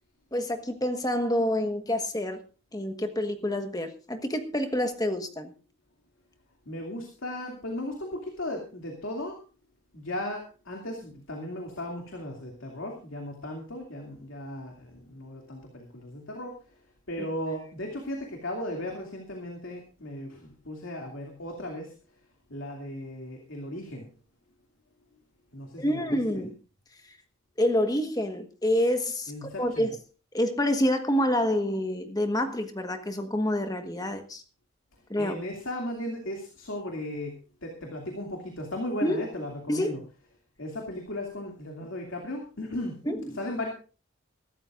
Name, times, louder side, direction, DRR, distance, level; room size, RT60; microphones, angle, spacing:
voice 1, 0.3-2.4 2.7-5.5 25.8-26.5 27.6-30.0 30.3-34.4 35.1-35.3 39.0-39.2 39.7-39.9 43.1-43.4, left 1 dB, 20° left, 7 dB, 1.4 m, -27 dB
voice 2, 6.7-9.4 9.9-16.8 17.1-21.9 22.5-24.1 25.5-26.2 29.3-29.9 35.2-40.0 40.6-43.0 43.3-43.7, left 1 dB, 80° left, 1 dB, 2.6 m, -36 dB
23.0 x 12.5 x 2.5 m, 0.36 s
head